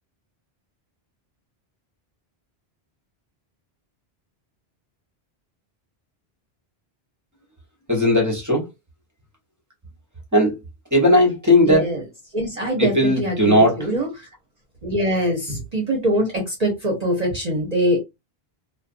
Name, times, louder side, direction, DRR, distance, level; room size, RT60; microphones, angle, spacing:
voice 1, 7.9-8.7 10.3-10.6 10.9-11.9 12.8-13.8, left 1 dB, 20° right, 1.0 m, -17 dB
voice 2, 11.6-12.0 12.3-14.3 14.8-18.0, equal, 40° right, 0.9 m, -23 dB
2.5 x 2.4 x 2.5 m
omnidirectional pair, 1.0 m